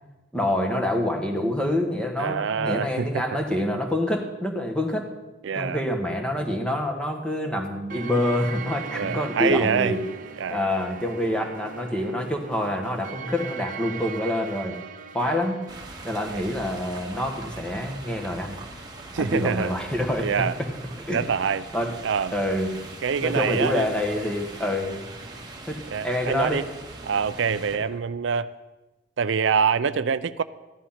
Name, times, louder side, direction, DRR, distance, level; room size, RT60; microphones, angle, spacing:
voice 1, 0.3-5.1 5.5-10.0 10.5-14.8 15.1-15.6 16.0-18.6 19.2-20.3 20.6-20.7 21.1-21.2 21.7-21.9 22.3-22.7 23.2-25.0 25.7-26.7 27.7-27.8, left 1 dB, 5° left, 3 dB, 1.4 m, -26 dB
voice 2, 2.2-3.2 5.4-5.8 8.9-10.0 10.4-10.6 15.2-15.4 16.2-16.4 19.1-19.7 20.2-20.6 21.1-21.7 22.0-22.3 23.0-23.9 25.9-26.6 27.0-28.5 29.2-30.4, right 6 dB, 75° right, 14 dB, 0.5 m, -25 dB
Futuristic Threathing March, 7.9-16.7, right 6 dB, 45° right, 1.0 m, -39 dB
sound 1, 15.7-27.8, right 2 dB, 20° right, 1.5 m, -41 dB
14.5 x 11.5 x 5.8 m, 1.1 s
head